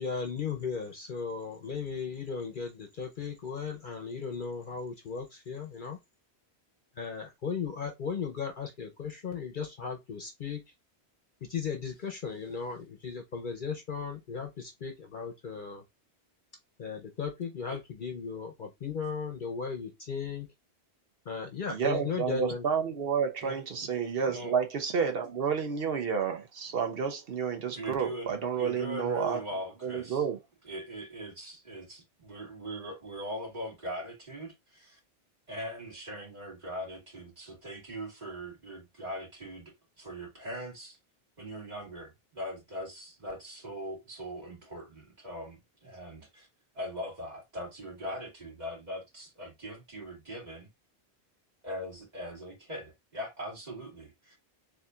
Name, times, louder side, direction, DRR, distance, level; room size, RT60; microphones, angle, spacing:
voice 1, 0.0-6.0 7.0-10.6 11.4-15.8 16.8-20.5 21.3-22.6, left 5 dB, 55° left, 0.9 m, -36 dB
voice 2, 21.7-29.4 29.8-30.4, right 6 dB, 65° right, 0.8 m, -30 dB
voice 3, 27.7-30.2 30.6-35.0 35.5-41.0 41.4-46.5 46.7-50.7 51.6-54.4, equal, 40° right, 2.2 m, -41 dB
6.7 x 2.7 x 2.3 m
omnidirectional pair, 1.1 m